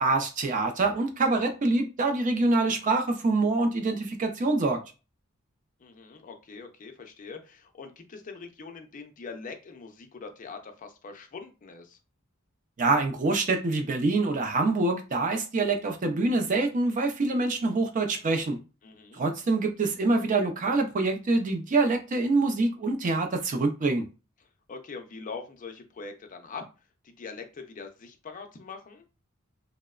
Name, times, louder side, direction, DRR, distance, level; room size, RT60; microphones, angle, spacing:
voice 1, 0.0-4.8 12.8-18.6 19.2-24.0, right 3 dB, 40° right, 0.4 m, -25 dB
voice 2, 5.8-12.0 18.8-19.2 24.4-26.6 27.0-29.1, left 4 dB, 40° left, 0.4 m, -43 dB
2.9 x 2.0 x 2.3 m
head